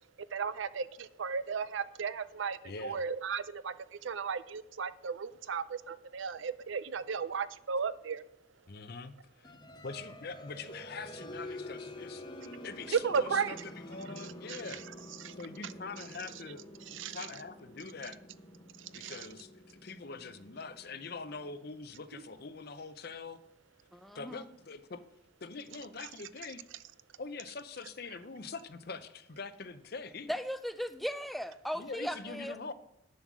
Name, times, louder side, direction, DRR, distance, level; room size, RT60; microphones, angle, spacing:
voice 1, 0.3-8.2 12.9-13.6 14.5-14.6 15.2-15.3 16.9-17.2 18.8-19.2, right 6 dB, 65° right, 15 dB, 0.5 m, -35 dB
voice 2, 2.6-3.0 8.7-9.6 9.8-12.2 12.6-14.8 15.3-16.6 16.9-18.2 18.9-23.4 24.1-25.0 25.4-26.7 27.2-30.3 31.7-32.7, left 4 dB, 50° left, 12 dB, 0.6 m, -44 dB
sound 1, 9.4-22.0, left 1 dB, 20° left, 0.8 m, -48 dB
voice 3, 23.9-24.5 30.3-32.6, equal, ahead, 10 dB, 0.4 m, -37 dB
9.9 x 7.3 x 6.1 m, 0.79 s
head